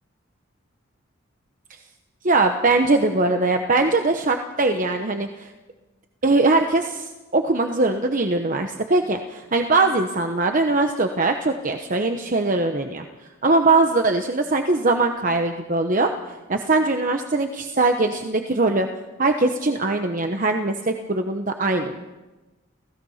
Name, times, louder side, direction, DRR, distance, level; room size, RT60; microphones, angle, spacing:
voice 1, 2.2-5.5 6.2-13.0 13.4-18.9 19.2-22.0, right 3 dB, 40° right, 5 dB, 1.0 m, -21 dB
27.5 x 16.5 x 5.7 m, 1.2 s
head